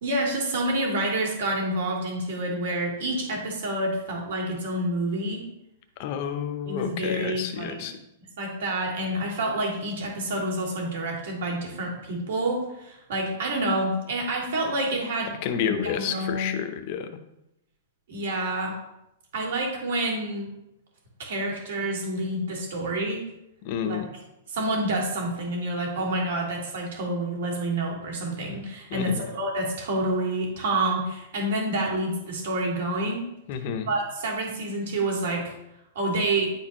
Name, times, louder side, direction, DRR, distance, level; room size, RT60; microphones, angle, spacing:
voice 1, 0.0-5.4 6.6-7.9 8.4-15.3 15.6-16.5 18.1-18.8 19.3-20.5 21.2-23.2 23.8-24.0 24.5-33.2 33.9-35.5 36.0-36.5, right 1 dB, 60° right, 0 dB, 2.2 m, -28 dB
voice 2, 6.0-7.9 15.4-17.1 23.6-24.1 28.9-29.3 33.5-33.9, left 8 dB, 35° left, 8 dB, 0.6 m, -30 dB
9.7 x 4.3 x 3.0 m, 0.86 s
supercardioid pair, 170°, 0 cm